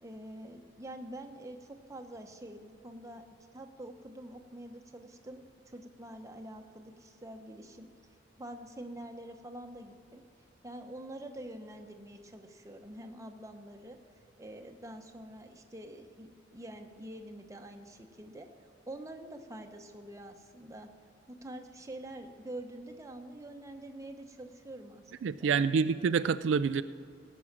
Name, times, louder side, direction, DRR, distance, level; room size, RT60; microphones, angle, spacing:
voice 1, 0.0-3.2 3.5-7.9 8.4-10.2 10.6-14.0 14.4-18.5 18.9-20.9 21.3-25.6, right 1 dB, 15° right, 5 dB, 0.8 m, -46 dB
voice 2, 25.2-26.8, right 6 dB, 75° right, 13 dB, 0.3 m, -27 dB
17.5 x 6.2 x 7.3 m, 2.1 s
head